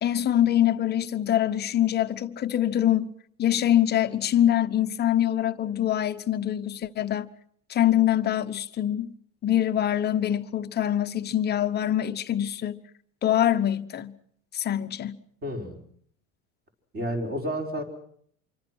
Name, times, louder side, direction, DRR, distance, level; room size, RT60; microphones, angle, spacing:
voice 1, 0.0-3.1 3.4-7.3 7.7-9.1 9.4-12.8 13.2-14.1 14.5-15.2, left 11 dB, 25° left, 1.0 m, -24 dB
voice 2, 15.4-15.8 16.9-17.8, equal, 25° right, 5.5 m, -30 dB
26.5 x 24.5 x 6.3 m
cardioid pair, 155°, 37 cm